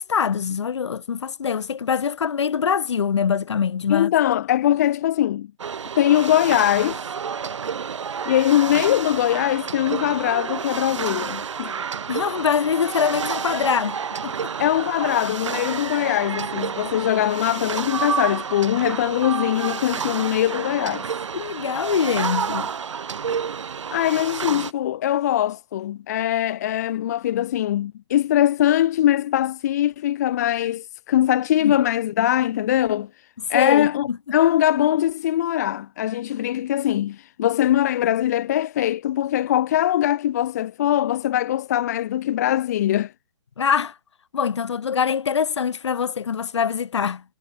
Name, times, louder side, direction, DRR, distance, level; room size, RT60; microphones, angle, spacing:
voice 1, 0.0-4.1 12.1-14.5 21.3-22.7 31.6-31.8 33.5-34.2 43.6-43.9 44.3-47.2, left 7 dB, 65° left, 2.5 m, -24 dB
voice 2, 3.9-5.5 6.0-7.0 8.2-11.7 14.6-21.1 23.9-33.1 33.5-43.1, left 12 dB, 30° left, 0.7 m, -22 dB
sound 1, 5.6-24.7, right 6 dB, 70° right, 1.6 m, -30 dB
hypercardioid pair, 160°, 16 cm